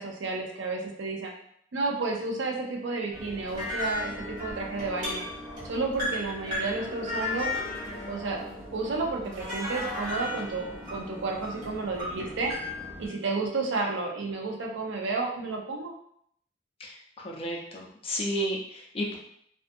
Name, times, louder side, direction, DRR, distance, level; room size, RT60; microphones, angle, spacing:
voice 1, 0.0-1.3 1.7-5.2 5.6-7.5 8.1-8.4 8.7-12.5 13.0-15.9, right 3 dB, 80° right, 0 dB, 0.5 m, -31 dB
sound 1, 3.1-13.1, left 1 dB, 40° right, 1.2 m, -35 dB
voice 2, 17.2-19.2, equal, 30° left, -2 dB, 0.5 m, -32 dB
2.4 x 2.4 x 2.5 m, 0.68 s
head